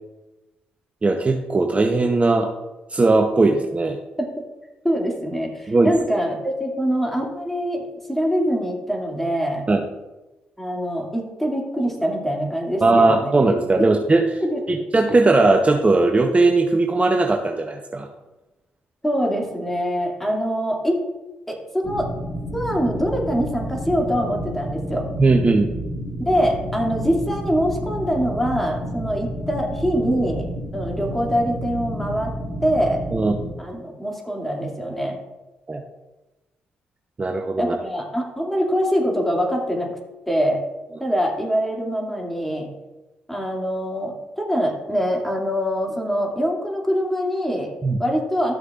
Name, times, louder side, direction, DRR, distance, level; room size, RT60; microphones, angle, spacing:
voice 1, 1.0-2.5 2.9-4.0 5.7-5.9 9.7-9.8 12.8-14.4 14.7-18.1 25.2-25.7 33.1-33.4 35.7-35.8 37.2-37.7 47.8-48.0, right 3 dB, 30° right, 3 dB, 0.9 m, -18 dB
voice 2, 4.8-9.7 10.6-13.3 13.8-13.9 14.4-14.6 19.0-21.0 21.5-22.1 22.5-25.1 26.2-30.5 30.7-32.3 32.6-33.0 33.6-35.2 37.6-40.0 40.3-40.6 41.0-42.7 43.3-47.7 48.0-48.5, equal, 5° left, -1 dB, 2.5 m, -24 dB
sound 1, 21.8-33.5, equal, 30° left, 1.9 m, -30 dB
13.0 x 6.4 x 2.5 m, 1.1 s
hypercardioid pair, 45°, 4 cm